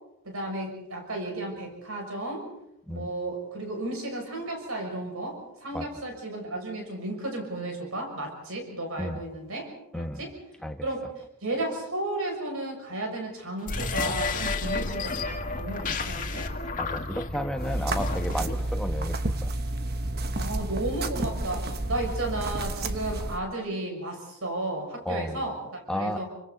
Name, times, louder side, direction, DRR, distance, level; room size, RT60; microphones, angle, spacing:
voice 1, 0.2-2.5 2.9-9.7 9.9-10.3 10.8-16.5 20.4-26.3, right 2 dB, 65° right, 3 dB, 6.4 m, -33 dB
sound 1, 13.6-18.7, left 3 dB, 35° left, 1.9 m, -31 dB
voice 2, 16.7-19.5 25.0-25.4 25.9-26.2, equal, 5° left, 6 dB, 1.2 m, -32 dB
sound 2, 17.6-23.4, right 2 dB, 45° right, 1.2 m, -30 dB
29.5 x 25.5 x 4.1 m, 0.82 s
head